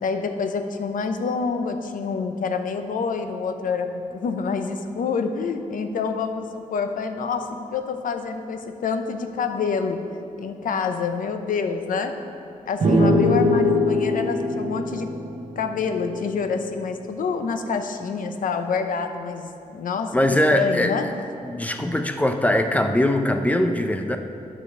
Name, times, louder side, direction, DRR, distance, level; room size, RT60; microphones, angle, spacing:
voice 1, 0.0-10.0 10.4-12.2 12.7-15.1 15.6-20.2 20.5-21.2, left 5 dB, 85° left, 7 dB, 0.7 m, -27 dB
sound 1, 12.8-16.4, left 1 dB, 55° right, 1.4 m, -21 dB
voice 2, 20.1-20.9 21.4-24.2, left 1 dB, 10° left, 6 dB, 0.6 m, -21 dB
9.8 x 5.0 x 7.0 m, 2.6 s
wide cardioid pair, 130°, 14 cm